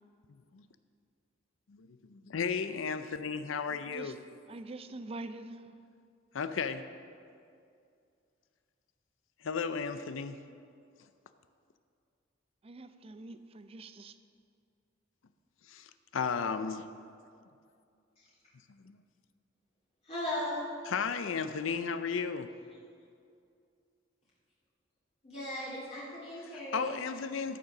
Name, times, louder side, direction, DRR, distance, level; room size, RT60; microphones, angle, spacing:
voice 1, 1.7-4.2 6.3-6.9 9.4-10.4 15.7-16.9 18.8-19.0 20.9-22.5 26.7-27.6, left 5 dB, 85° left, 10 dB, 0.5 m, -34 dB
voice 2, 4.5-5.7 12.6-14.2, right 2 dB, 30° right, 11 dB, 0.4 m, -45 dB
voice 3, 20.0-20.6 25.2-27.0, left 1 dB, 35° left, -8 dB, 2.4 m, -37 dB
13.5 x 6.5 x 6.0 m, 2.4 s
head